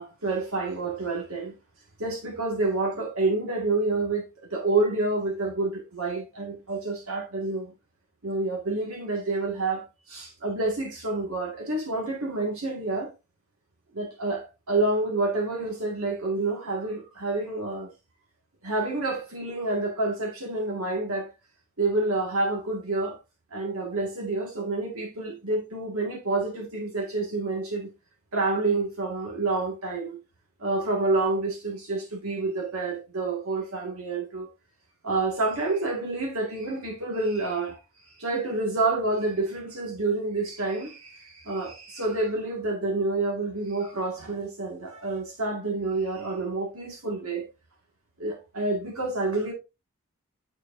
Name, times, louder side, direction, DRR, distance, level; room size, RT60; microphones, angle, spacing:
voice 1, 0.0-1.5 2.0-7.7 8.2-13.1 13.9-17.9 18.6-21.3 21.8-23.2 23.5-27.9 28.3-30.2 30.6-34.5 35.0-37.8 38.2-47.5 48.2-49.5, right 2 dB, 75° right, 1.9 m, -28 dB
9.9 x 4.6 x 2.6 m
head